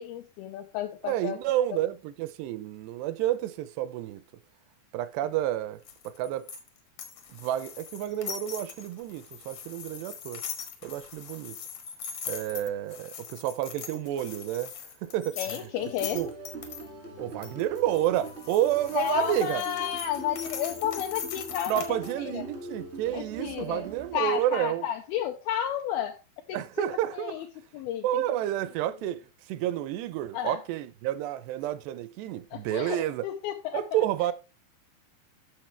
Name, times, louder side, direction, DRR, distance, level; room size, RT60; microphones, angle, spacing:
voice 1, 0.0-1.4 15.4-16.2 18.9-22.5 23.1-23.9 24.1-26.2 26.5-26.9 27.1-27.5 27.7-28.2 30.3-30.6 32.5-33.8, left 10 dB, 90° left, 2.1 m, -32 dB
voice 2, 1.0-4.2 4.9-6.5 7.3-10.4 10.8-11.6 12.3-14.7 15.0-15.4 16.1-16.3 17.2-19.6 21.7-24.8 26.5-27.3 28.0-33.2 33.7-34.3, right 13 dB, 80° right, 2.5 m, -30 dB
sound 1, 5.8-16.8 17.4-22.1, left 7 dB, 70° left, 1.6 m, -41 dB
sound 2, 15.7-24.7, right 1 dB, 50° right, 0.7 m, -42 dB
12.0 x 6.4 x 3.3 m
omnidirectional pair, 5.1 m